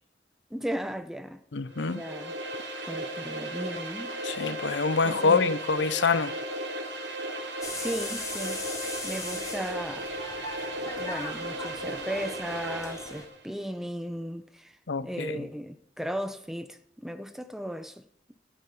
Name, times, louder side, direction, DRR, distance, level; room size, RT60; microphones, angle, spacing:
voice 1, 0.5-1.4 1.9-2.4 2.8-4.1 5.0-5.5 7.8-8.6 9.0-10.1 10.8-14.8 15.0-18.0, equal, ahead, 0.8 m, -36 dB
voice 2, 1.5-2.0 4.2-6.3 14.9-15.4, left 4 dB, 85° left, 0.7 m, -26 dB
sound 1, 1.7-13.4, right 1 dB, 90° right, 3.0 m, -36 dB
sound 2, 7.6-13.2, left 2 dB, 20° left, 3.3 m, -39 dB
13.5 x 8.2 x 9.0 m
head